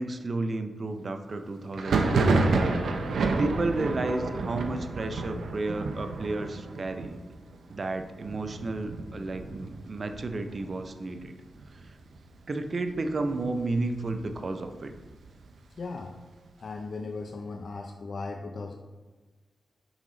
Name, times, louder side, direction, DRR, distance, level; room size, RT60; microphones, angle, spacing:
voice 1, 0.0-2.5 3.4-7.2 7.7-11.3 12.5-14.9, right 2 dB, 45° right, 8 dB, 0.6 m, -32 dB
Thunder, 1.7-11.2 11.5-12.2 12.4-13.4 13.8-15.5, right 3 dB, 80° right, 0.7 m, -30 dB
voice 2, 15.8-16.1 16.6-18.8, left 3 dB, 60° left, 4 dB, 0.5 m, -37 dB
5.9 x 5.6 x 3.9 m, 1.3 s
wide cardioid pair, 95°, 0 cm